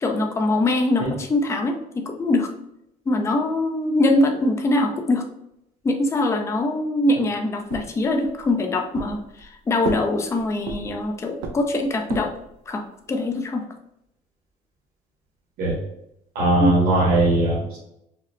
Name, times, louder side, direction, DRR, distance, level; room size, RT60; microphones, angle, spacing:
voice 1, 0.0-2.5 3.1-5.3 5.8-12.3 12.7-13.7 16.6-16.8, left 2 dB, 15° left, 4 dB, 0.4 m, -23 dB
sound 1, 7.7-8.5 8.9-9.5 9.8-11.1 11.4-12.5, right 4 dB, 90° right, 0.6 m, -33 dB
voice 2, 16.3-17.8, right 2 dB, 65° right, -6 dB, 1.3 m, -19 dB
4.9 x 2.0 x 3.1 m, 0.81 s
cardioid pair, 120°, 16 cm